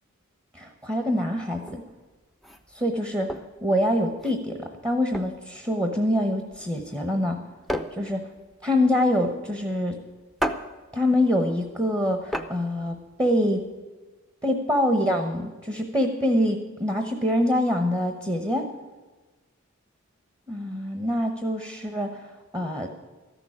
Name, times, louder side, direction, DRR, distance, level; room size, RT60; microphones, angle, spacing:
voice 1, 0.5-1.8 2.7-7.4 7.9-8.3 8.6-10.0 10.9-13.6 14.4-18.7 20.5-22.9, left 1 dB, 15° right, 5 dB, 1.0 m, -25 dB
sound 1, 1.6-13.8, equal, ahead, 0.6 m, -36 dB
13.5 x 6.9 x 9.8 m, 1.3 s
head